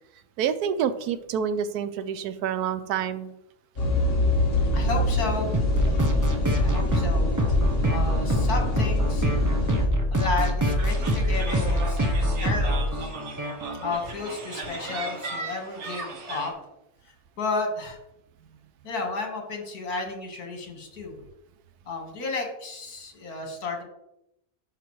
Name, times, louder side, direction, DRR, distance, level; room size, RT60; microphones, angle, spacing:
voice 1, 0.4-3.3, right 8 dB, 90° right, 12 dB, 1.1 m, -28 dB
sound 1, 3.8-9.9, left 2 dB, 40° left, 1.6 m, -26 dB
voice 2, 4.7-5.5 6.6-7.3 7.8-9.4 10.1-13.1 13.8-16.5 17.4-18.0 18.8-21.1 21.9-23.8, left 3 dB, 80° left, 2 dB, 2.1 m, -32 dB
sound 2, 5.5-13.9, equal, 20° right, 0.5 m, -24 dB
sound 3, 10.8-16.5, right 3 dB, 55° right, 1.4 m, -37 dB
11.0 x 5.0 x 3.1 m, 0.85 s
omnidirectional pair, 1.6 m